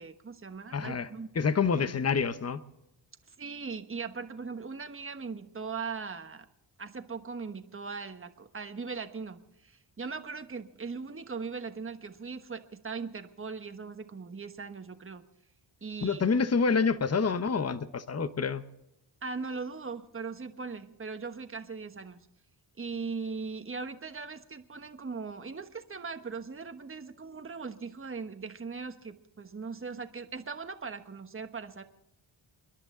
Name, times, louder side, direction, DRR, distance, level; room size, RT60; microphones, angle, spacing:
voice 1, 0.0-1.3 1.7-1.9 3.3-6.5 6.8-15.2 15.8-16.2 19.2-22.3 22.8-31.8, right 4 dB, 25° right, 7 dB, 1.2 m, -39 dB
voice 2, 0.7-1.1 1.3-2.6 16.0-18.6, left 5 dB, 30° left, 12 dB, 0.9 m, -27 dB
29.5 x 10.5 x 3.8 m, 0.88 s
cardioid pair, 75°, 48 cm